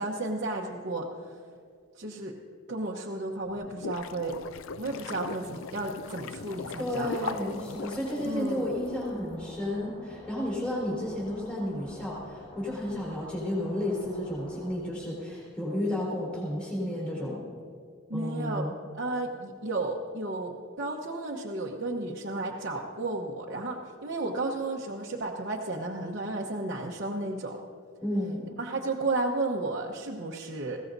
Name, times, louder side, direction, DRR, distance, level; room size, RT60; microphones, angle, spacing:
voice 1, 0.0-1.4 2.0-2.3 2.7-4.4 4.8-7.3 8.2-8.7 18.1-18.7 18.9-27.6 28.6-30.8, right 2 dB, 55° right, -3 dB, 1.0 m, -33 dB
sound 1, 3.5-8.9, left 5 dB, 70° left, 0.5 m, -40 dB
sound 2, 6.5-14.8, equal, 25° left, 4.3 m, -49 dB
voice 2, 6.8-17.4 18.1-18.7 28.0-28.4, left 1 dB, 5° left, -7 dB, 4.0 m, -32 dB
20.5 x 16.5 x 2.7 m, 2.1 s
head